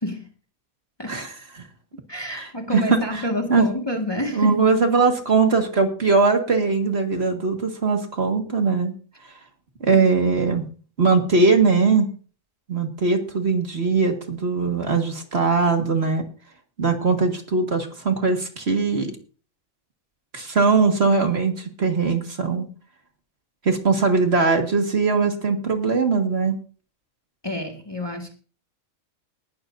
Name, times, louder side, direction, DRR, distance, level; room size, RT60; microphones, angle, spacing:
voice 1, 1.1-1.6 2.3-2.8 3.1-3.2 3.5-3.7 4.3-8.9 9.8-10.7 11.0-12.1 12.7-16.3 16.8-19.2 20.3-22.7 23.6-26.6, right 4 dB, 45° right, 4 dB, 2.0 m, -20 dB
voice 2, 2.1-4.6 9.9-10.0 27.4-28.3, left 1 dB, 15° left, 2 dB, 1.7 m, -28 dB
19.5 x 12.5 x 2.6 m, 0.38 s
omnidirectional pair, 1.5 m